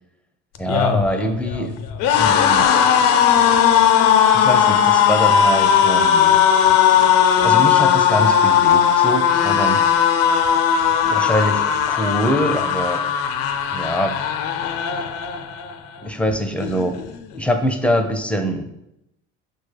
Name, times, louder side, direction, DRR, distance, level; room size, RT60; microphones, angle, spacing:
sound 1, 0.6-15.8 16.1-16.3 16.6-17.4, left 8 dB, 75° left, 0.5 m, -17 dB
voice 1, 0.6-1.7 2.2-2.7 4.3-6.4 7.4-9.9 11.0-13.0 13.7-14.2 16.0-17.0 17.4-18.7, equal, 5° left, 6 dB, 0.5 m, -23 dB
5.9 x 2.3 x 3.2 m, 0.83 s
supercardioid pair, 70°, 33 cm